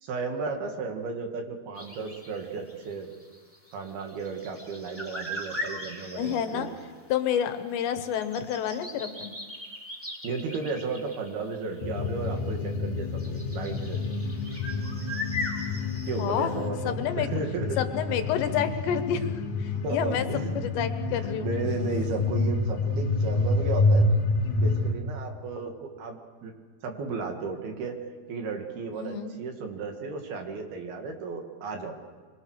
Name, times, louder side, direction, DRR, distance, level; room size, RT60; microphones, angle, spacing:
voice 1, 0.0-3.2 3.7-6.8 10.2-14.0 16.1-17.8 19.8-20.6 21.1-24.1 24.5-26.5 26.8-28.0 28.3-32.0, right 4 dB, 65° right, 4 dB, 4.0 m, -34 dB
sound 1, 1.7-6.9 7.1-7.2 7.7-12.4 13.0-16.7, left 1 dB, 5° right, 2.4 m, -40 dB
voice 2, 6.1-6.7 7.1-9.3 16.2-16.6 16.9-17.3 17.8-20.3 20.6-21.5 28.9-29.3, left 9 dB, 90° left, 8 dB, 3.6 m, -29 dB
sound 2, 11.8-24.9, left 3 dB, 50° left, 2.9 m, -28 dB
25.5 x 23.5 x 6.6 m, 1.5 s
omnidirectional pair, 4.9 m